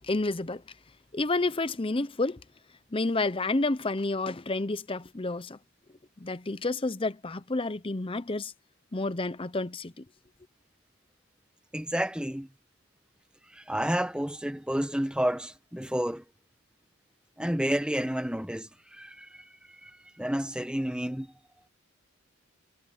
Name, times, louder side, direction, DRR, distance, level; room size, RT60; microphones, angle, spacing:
voice 1, 0.1-0.6 1.1-2.4 2.9-5.6 6.2-8.5 8.9-10.0, left 2 dB, 25° left, 0.7 m, -30 dB
voice 2, 11.7-12.5 13.5-16.2 17.4-19.4 19.8-21.3, equal, 5° right, 1.2 m, -30 dB
head